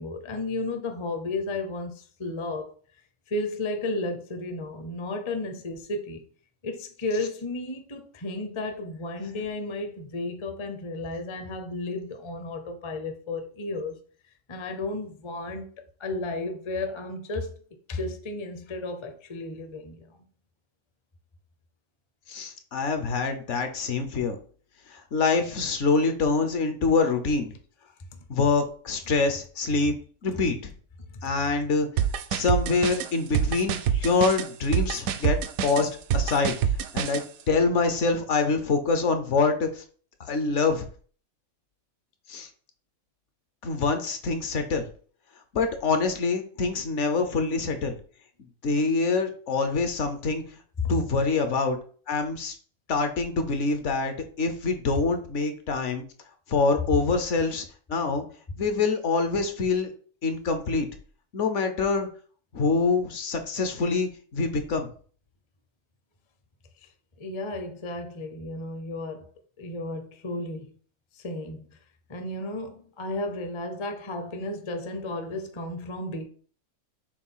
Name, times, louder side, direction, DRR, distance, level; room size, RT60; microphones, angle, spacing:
voice 1, 0.0-2.7 3.3-6.2 6.6-14.0 14.5-15.7 16.0-17.6 17.9-20.1 67.2-69.2 69.6-70.7 71.1-71.7 72.1-76.3, left 2 dB, 30° left, 0.6 m, -33 dB
voice 2, 22.3-24.4 24.9-27.5 28.3-29.9 30.2-30.6 31.2-31.9 32.3-36.5 36.9-39.8 40.3-40.9 42.3-42.5 43.6-44.9 45.5-48.0 48.6-50.4 50.9-51.8 52.1-52.6 52.9-56.0 56.5-58.2 58.6-59.9 60.2-60.9 61.3-62.1 62.5-64.9, left 4 dB, 60° left, 1.1 m, -25 dB
sound 1, 32.0-37.2, right 8 dB, 80° right, 1.0 m, -26 dB
7.1 x 2.4 x 5.5 m
omnidirectional pair, 1.5 m